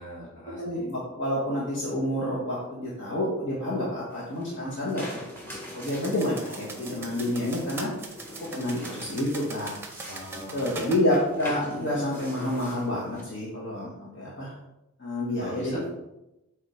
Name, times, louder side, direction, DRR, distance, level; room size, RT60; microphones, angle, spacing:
voice 1, 0.0-0.9 10.1-10.9 15.4-15.9, equal, 35° left, -6 dB, 2.7 m, -41 dB
voice 2, 0.6-7.9 8.4-9.7 10.3-14.5 15.0-15.8, left 1 dB, 55° left, -6 dB, 1.5 m, -29 dB
sound 1, 4.1-13.2, equal, 10° left, 1.3 m, -43 dB
sound 2, 5.9-11.0, right 3 dB, 10° right, 0.8 m, -41 dB
7.4 x 3.8 x 5.0 m, 0.93 s
head